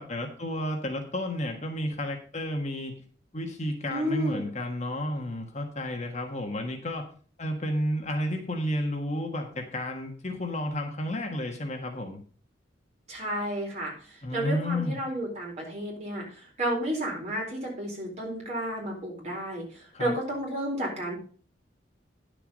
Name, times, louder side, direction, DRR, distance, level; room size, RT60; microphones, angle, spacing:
voice 1, 0.0-3.0 3.3-7.1 7.4-12.2 14.2-15.0 19.9-20.2, left 1 dB, 35° left, 4 dB, 1.4 m, -31 dB
voice 2, 3.9-4.5 13.1-13.9 14.3-16.2 16.6-19.6 20.0-21.2, right 1 dB, 35° right, -2 dB, 4.3 m, -31 dB
10.5 x 6.8 x 5.2 m, 0.41 s
head